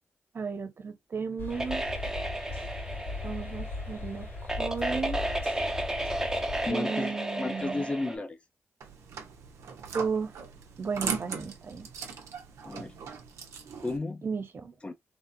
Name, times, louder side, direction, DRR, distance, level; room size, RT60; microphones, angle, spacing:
voice 1, 0.3-1.8 3.2-4.3 4.6-5.2 6.7-7.9 9.9-10.3 10.8-11.9 14.2-14.7, right 5 dB, 55° right, 1.0 m, -34 dB
sound 1, 1.4-6.7, left 3 dB, 65° left, 2.0 m, -38 dB
sound 2, 1.5-8.2, right 1 dB, 10° right, 0.8 m, -33 dB
voice 2, 6.7-8.4 12.6-13.0 13.8-14.2 14.8-14.9, left 2 dB, 25° left, 0.6 m, -33 dB
sound 3, 8.8-14.0, right 6 dB, 90° right, 0.6 m, -39 dB
3.4 x 2.1 x 2.7 m
cardioid pair, 60°, 5 cm